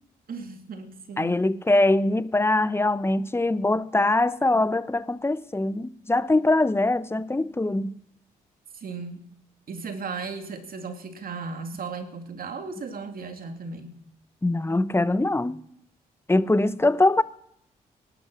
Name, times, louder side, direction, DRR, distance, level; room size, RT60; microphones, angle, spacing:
voice 1, 0.3-1.4 8.7-9.3 9.7-14.0, right 4 dB, 60° right, 2.4 m, -36 dB
voice 2, 1.2-8.0 14.4-15.6 16.3-17.2, left 2 dB, 15° left, 0.8 m, -22 dB
18.5 x 12.0 x 6.2 m
supercardioid pair, 55°, 17 cm